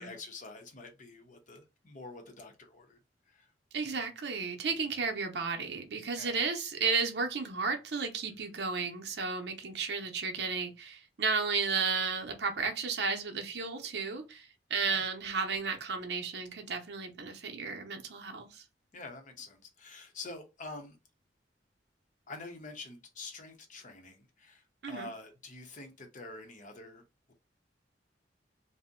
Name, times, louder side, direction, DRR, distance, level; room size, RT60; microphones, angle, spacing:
voice 1, 0.0-3.0 3.3-3.5 3.8-4.1 6.2-6.4 14.8-15.0 18.9-21.0 22.3-27.0, left 3 dB, 45° left, 0.7 m, -47 dB
voice 2, 3.7-18.6 24.8-25.1, right 5 dB, 65° right, 0.6 m, -33 dB
2.6 x 2.1 x 3.6 m
head